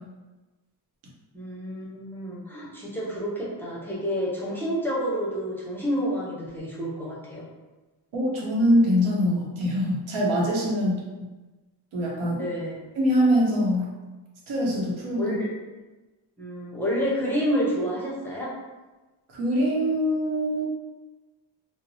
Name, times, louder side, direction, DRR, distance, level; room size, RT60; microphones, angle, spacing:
voice 1, 1.3-7.5 10.8-10.9 12.4-12.8 15.2-15.5 16.4-18.5, equal, 5° left, -7 dB, 0.6 m, -29 dB
voice 2, 8.1-11.0 11.9-12.4 13.0-13.9 14.5-15.4 19.3-20.7, equal, 90° right, -3 dB, 0.8 m, -23 dB
2.8 x 2.0 x 2.6 m, 1.2 s
cardioid pair, 95°, 47 cm